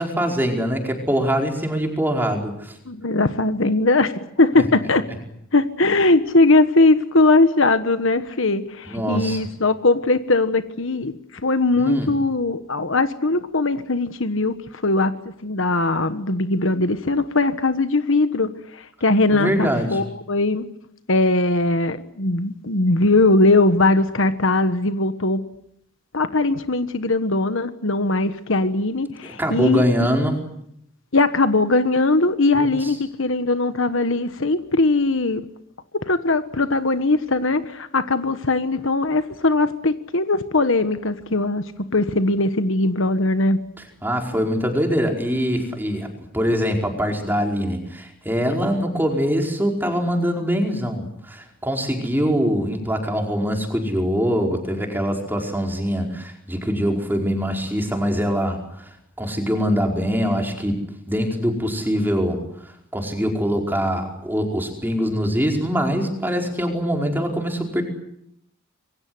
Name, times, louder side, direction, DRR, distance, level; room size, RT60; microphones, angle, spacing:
voice 1, 0.0-2.8 4.6-4.7 8.9-9.4 11.8-12.1 19.3-20.0 29.4-30.4 32.5-33.0 44.0-46.1 46.3-60.8 61.1-67.8, equal, 10° right, 2 dB, 4.9 m, -23 dB
voice 2, 2.9-5.0 5.5-14.5 14.8-15.1 15.4-20.7 21.1-25.4 26.1-29.8 31.1-35.4 36.1-41.6 41.9-43.6, left 2 dB, 65° left, 10 dB, 1.4 m, -20 dB
27.0 x 23.5 x 7.9 m, 0.75 s
head